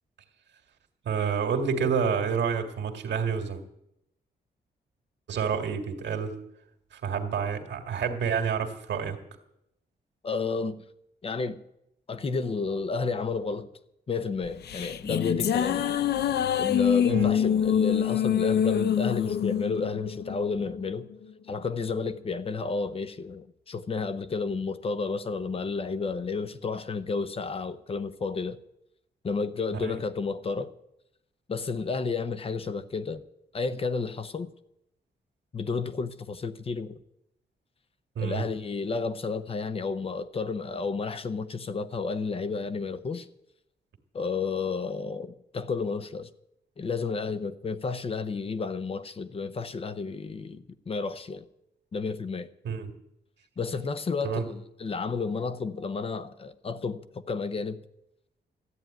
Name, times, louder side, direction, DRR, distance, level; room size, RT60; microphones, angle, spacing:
voice 1, 1.0-3.6 5.3-6.4 6.9-9.2 17.1-17.3 29.7-30.0 38.2-38.4 52.6-52.9 54.2-54.5, right 6 dB, 90° right, 2.1 m, -28 dB
voice 2, 10.2-10.8 11.2-11.6 12.1-13.7 14.1-15.8 16.5-21.1 21.5-28.6 29.2-30.7 31.5-33.2 33.5-34.5 35.5-37.0 38.2-43.3 44.1-46.3 46.8-51.5 51.9-52.5 53.6-57.8, left 4 dB, 35° left, 0.7 m, -31 dB
sound 1, 14.4-21.0, left 9 dB, 65° left, 0.6 m, -26 dB
14.0 x 9.3 x 9.0 m
wide cardioid pair, 170°, 18 cm